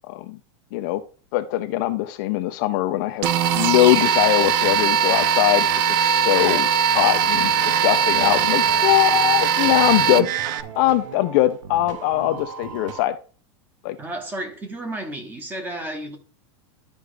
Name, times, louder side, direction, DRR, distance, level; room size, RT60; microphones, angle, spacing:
voice 1, 1.3-3.3 3.5-6.7 6.9-10.3 10.8-13.2 13.8-14.0, left 15 dB, 40° left, 0.5 m, -21 dB
sound 1, 3.2-10.6, right 8 dB, 45° right, 0.6 m, -20 dB
sound 2, 7.0-13.1, right 6 dB, 80° right, 1.1 m, -38 dB
voice 2, 14.0-16.2, right 1 dB, 10° right, 1.1 m, -32 dB
12.0 x 5.0 x 3.3 m
supercardioid pair, 170°, 16 cm